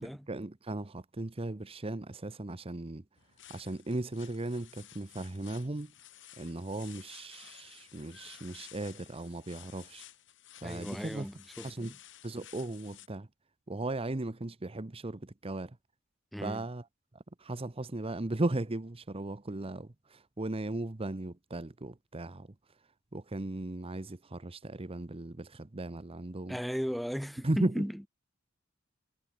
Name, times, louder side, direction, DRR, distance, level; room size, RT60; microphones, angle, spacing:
voice 1, 0.0-3.0 3.5-5.9 6.4-10.1 10.6-11.3 11.6-11.9 12.2-13.3 13.7-15.8 16.4-16.8 17.1-22.8 23.1-26.6 27.4-27.8, right 2 dB, 30° right, 0.9 m, -37 dB
sound 1, 3.1-13.1, left 12 dB, 65° left, 2.5 m, -54 dB
voice 2, 10.6-12.0 16.3-16.6 26.5-28.1, equal, ahead, 1.5 m, -36 dB
head